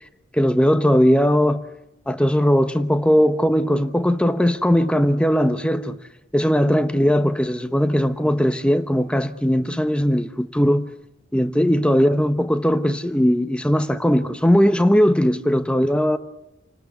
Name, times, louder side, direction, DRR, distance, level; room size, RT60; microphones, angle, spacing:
voice 1, 0.3-1.6 2.1-6.0 6.3-10.9 11.3-16.2, equal, 5° left, 1.0 m, -19 dB
29.5 x 19.5 x 8.2 m
head